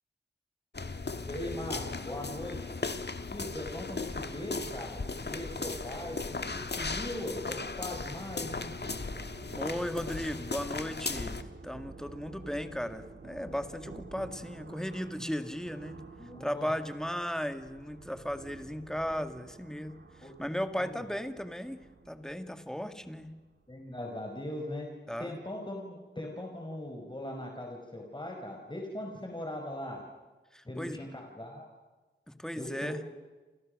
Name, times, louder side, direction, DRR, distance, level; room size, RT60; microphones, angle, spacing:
sound 1, 0.7-11.4, left 3 dB, 60° left, 1.6 m, -37 dB
voice 1, 1.2-2.6 3.3-8.7 16.2-16.7 20.2-20.3 20.8-21.0 23.7-24.9 25.2-30.0 30.6-31.7 32.6-33.0, left 1 dB, 25° left, 1 dB, 4.9 m, -40 dB
sound 2, 8.8-24.1, right 4 dB, 80° right, 2.3 m, -51 dB
voice 2, 9.5-16.0 16.4-23.3 25.1-25.4 30.5-31.0 32.3-33.0, equal, 5° left, 9 dB, 1.9 m, -36 dB
29.0 x 28.5 x 6.5 m, 1.2 s
wide cardioid pair, 65°, 20 cm